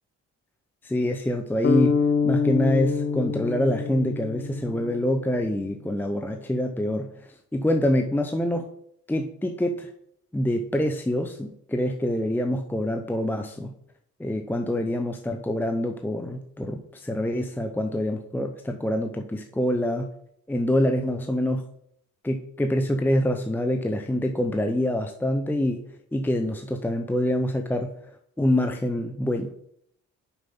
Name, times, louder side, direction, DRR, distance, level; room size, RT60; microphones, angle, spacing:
voice 1, 0.8-7.2 7.5-8.7 9.1-9.9 10.3-13.7 14.2-20.1 20.5-21.6 22.2-25.8 26.1-27.9 28.4-29.5, left 1 dB, 5° left, 5 dB, 0.6 m, -26 dB
sound 1, 1.6-5.6, left 5 dB, 40° left, 0.8 m, -26 dB
7.0 x 5.3 x 5.4 m, 0.71 s
cardioid pair, 90°, 30 cm